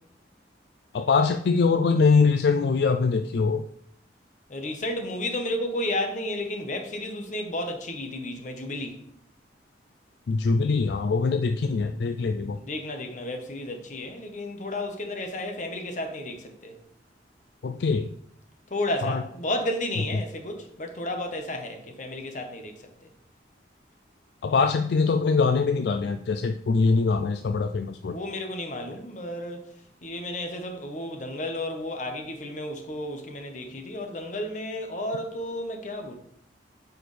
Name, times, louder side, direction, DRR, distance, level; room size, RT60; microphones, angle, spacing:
voice 1, 0.9-3.7 10.3-12.6 17.6-18.1 19.0-19.2 24.4-28.2, left 4 dB, 65° left, 0.3 m, -23 dB
voice 2, 4.5-9.0 12.5-16.8 18.7-22.7 28.1-29.6 30.0-36.2, left 1 dB, 45° left, 1.1 m, -32 dB
9.0 x 4.8 x 3.3 m
head